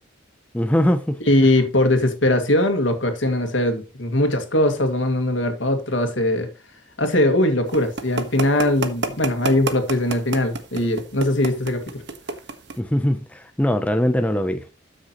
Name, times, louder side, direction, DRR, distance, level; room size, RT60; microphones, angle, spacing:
voice 1, 0.5-1.2 12.8-14.6, left 1 dB, 5° left, 0.6 m, -21 dB
voice 2, 1.3-6.5 7.0-11.8, left 1 dB, 70° left, 2.0 m, -20 dB
sound 1, 7.7-12.8, right 3 dB, 60° right, 1.3 m, -27 dB
12.5 x 6.5 x 3.0 m
head